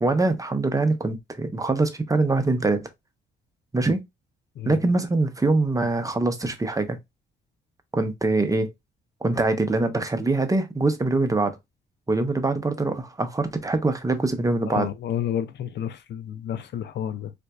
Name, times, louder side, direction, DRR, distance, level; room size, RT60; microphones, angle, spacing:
voice 1, 0.0-2.9 3.7-4.0 4.7-7.0 7.9-8.7 9.2-11.6 12.1-14.9, right 2 dB, 15° right, 0.7 m, -23 dB
voice 2, 14.7-17.3, left 9 dB, 60° left, 0.5 m, -30 dB
3.9 x 2.5 x 2.2 m
cardioid pair, 90°, 20 cm